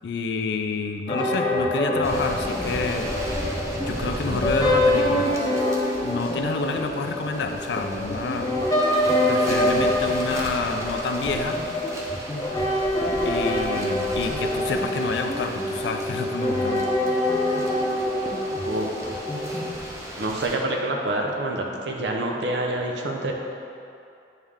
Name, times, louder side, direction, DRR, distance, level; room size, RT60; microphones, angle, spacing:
voice 1, 0.0-3.1 3.8-5.3 6.0-8.5 9.3-11.6 13.2-16.9, left 4 dB, 70° left, 6 dB, 0.4 m, -29 dB
sound 1, 1.1-19.7, left 1 dB, 20° left, 0.6 m, -25 dB
sound 2, 2.0-20.6, equal, 15° right, 0.7 m, -36 dB
voice 2, 20.2-23.3, right 1 dB, 75° right, 1 dB, 0.7 m, -27 dB
8.7 x 3.3 x 3.6 m, 2.5 s
head